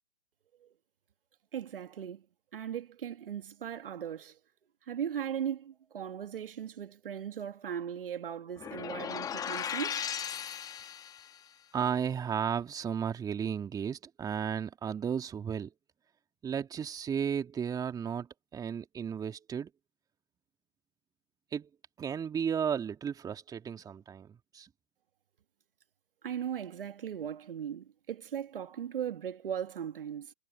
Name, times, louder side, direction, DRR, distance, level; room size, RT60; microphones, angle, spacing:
voice 1, 1.5-2.3 2.5-4.4 4.9-10.1 26.2-30.3, right 9 dB, 60° right, 2.2 m, -38 dB
sound 1, 8.6-11.4, left 8 dB, 10° left, 1.3 m, -37 dB
voice 2, 11.7-15.7 16.4-18.3 18.5-19.7 21.5-21.7 22.0-24.7, right 7 dB, 10° right, 2.6 m, -34 dB
hypercardioid pair, 130°, 31 cm